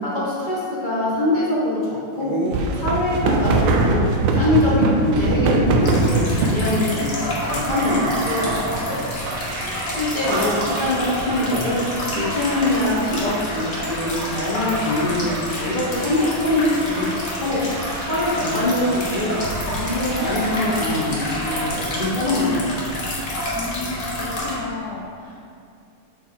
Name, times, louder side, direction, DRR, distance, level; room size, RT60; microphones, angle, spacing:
voice 1, 0.0-2.4 2.8-4.0 4.3-9.1 9.9-11.8 12.1-17.6 18.0-19.4 19.7-22.7, left 1 dB, 30° left, -8 dB, 1.0 m, -23 dB
sound 1, 2.2-6.7 7.5-8.8 9.3-9.8 10.3-12.1, right 3 dB, 80° right, 1.4 m, -22 dB
sound 2, 5.8-24.6, left 1 dB, 45° left, 1.4 m, -28 dB
sound 3, 8.9-21.7, right 1 dB, 50° right, 1.7 m, -36 dB
voice 2, 23.5-25.5, left 4 dB, 80° left, -2 dB, 0.9 m, -33 dB
5.9 x 4.5 x 4.1 m, 2.4 s
omnidirectional pair, 2.4 m